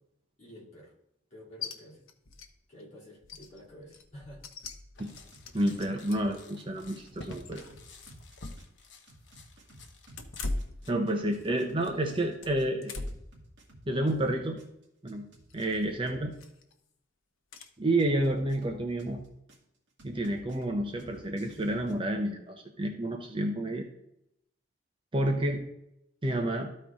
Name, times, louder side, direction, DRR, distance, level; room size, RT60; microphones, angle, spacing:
voice 1, 0.4-0.9 1.3-2.0 2.7-4.4 10.8-11.5, equal, 35° left, -5 dB, 2.9 m, -50 dB
sound 1, 1.6-1.7 2.1-2.5 2.8-2.9 3.2-6.4 6.9-8.3 8.6-8.7 10.1-11.5 11.8-13.3 13.8-14.1 15.5-15.9 16.3-16.7 17.5-17.7, left 2 dB, 90° left, 0.9 m, -41 dB
sound 2, 5.0-10.9, left 2 dB, 60° left, 1.0 m, -50 dB
sound 3, 5.1-6.3 6.6-10.3 10.6-14.3 14.6-16.3 18.0-19.6 20.0-21.9, right 1 dB, 60° right, 2.2 m, -53 dB
voice 2, 5.5-7.6 10.9-13.0 13.9-14.6 15.0-15.3 15.5-16.3 17.8-19.2 20.0-23.9 25.1-25.6 26.2-26.7, right 1 dB, 25° right, 3 dB, 0.7 m, -29 dB
13.0 x 4.5 x 3.6 m, 0.80 s
head